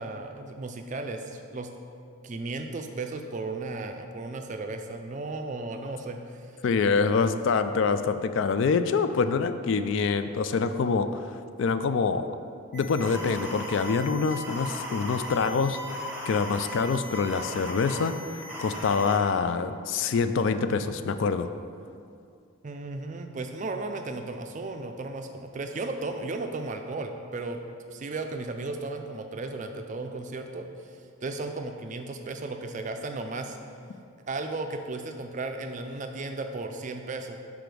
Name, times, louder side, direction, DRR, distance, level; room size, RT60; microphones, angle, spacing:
voice 1, 0.0-1.7 2.2-6.6 22.6-27.6 27.9-30.7 31.2-33.6 34.3-37.4, right 3 dB, 35° right, 5 dB, 0.4 m, -35 dB
voice 2, 6.6-12.3 12.7-21.5, left 5 dB, 60° left, 10 dB, 0.3 m, -26 dB
sound 1, 12.7-19.2, left 1 dB, 5° right, 0.9 m, -37 dB
5.1 x 4.9 x 6.1 m, 2.4 s
head